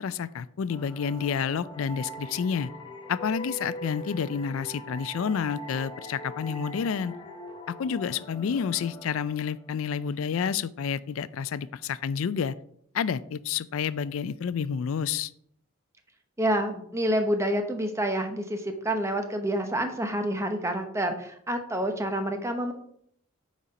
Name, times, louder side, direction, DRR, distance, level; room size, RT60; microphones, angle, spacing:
voice 1, 0.0-2.7 3.1-7.1 7.7-12.5 12.9-15.3, left 7 dB, 70° left, 17 dB, 0.4 m, -29 dB
sound 1, 0.7-10.1, equal, 25° left, 0.8 m, -42 dB
voice 2, 16.4-22.7, right 1 dB, 15° right, 5 dB, 0.8 m, -28 dB
9.1 x 4.2 x 4.9 m, 0.68 s
head